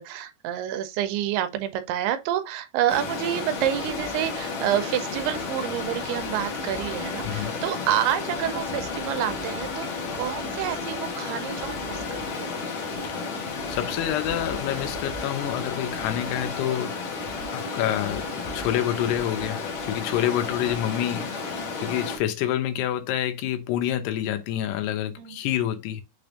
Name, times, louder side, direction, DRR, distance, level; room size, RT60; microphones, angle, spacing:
voice 1, 0.0-9.9 10.1-12.5 25.2-25.4, right 11 dB, 85° right, 2.6 m, -28 dB
Stream, 2.9-22.2, left 4 dB, 70° left, 1.7 m, -32 dB
voice 2, 7.2-7.5 13.7-17.1 17.5-21.3 21.8-26.0, left 12 dB, 85° left, 2.8 m, -27 dB
6.2 x 3.4 x 2.5 m
omnidirectional pair, 4.6 m